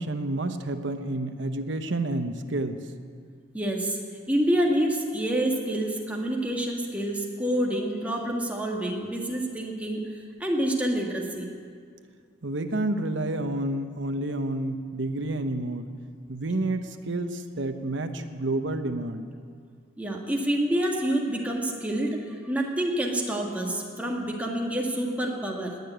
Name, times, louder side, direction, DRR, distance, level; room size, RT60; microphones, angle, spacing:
voice 1, 0.0-2.8 12.4-15.9 16.3-19.3, right 2 dB, 65° right, 7 dB, 1.0 m, -29 dB
voice 2, 3.5-4.0 4.3-10.1 10.4-11.5 20.0-25.8, right 1 dB, 5° right, -1 dB, 1.8 m, -27 dB
19.5 x 6.8 x 9.2 m, 2.1 s
head